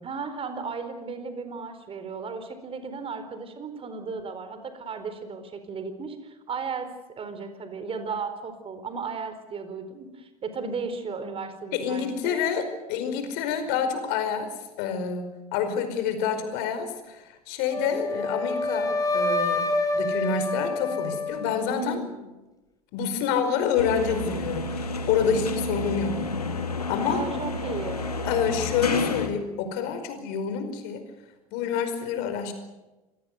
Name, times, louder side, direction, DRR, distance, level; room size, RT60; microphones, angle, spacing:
voice 1, 0.0-6.9 7.2-12.5 21.7-22.3 27.1-28.0, right 4 dB, 30° right, 9 dB, 4.3 m, -35 dB
voice 2, 11.7-19.6 19.9-22.0 22.9-26.2 26.9-27.2 28.2-31.0 31.5-32.5, left 7 dB, 55° left, 8 dB, 5.2 m, -28 dB
Wind instrument woodwind instrument, 17.7-21.8, left 2 dB, 20° left, 4.6 m, -27 dB
sound 1, 23.8-29.3, left 3 dB, 90° left, 2.3 m, -30 dB
27.0 x 18.0 x 8.2 m, 1.1 s
figure-of-eight pair, 80°, 19 cm